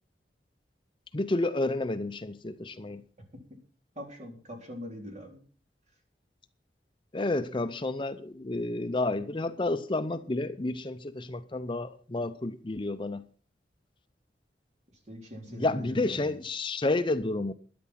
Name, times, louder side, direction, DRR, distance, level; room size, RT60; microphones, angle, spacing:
voice 1, 1.1-3.0 7.1-13.2 15.5-17.5, left 2 dB, 30° left, 0.6 m, -30 dB
voice 2, 4.0-5.4 15.1-16.4, equal, 40° right, 3.7 m, -42 dB
12.0 x 11.0 x 5.8 m
head